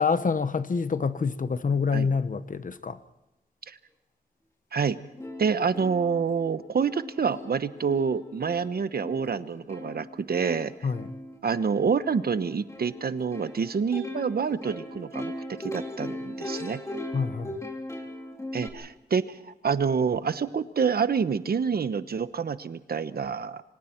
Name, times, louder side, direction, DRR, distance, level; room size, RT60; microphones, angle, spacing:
voice 1, 0.0-3.0 10.8-11.1 17.1-17.6, left 5 dB, 50° left, 1.0 m, -27 dB
Plucked string instrument, 4.8-4.9 5.2-18.7, left 1 dB, 15° left, 3.0 m, -39 dB
voice 2, 5.4-10.7 11.4-16.8 18.5-23.6, right 6 dB, 65° right, 1.0 m, -27 dB
26.5 x 25.0 x 4.5 m
wide cardioid pair, 115°, 17 cm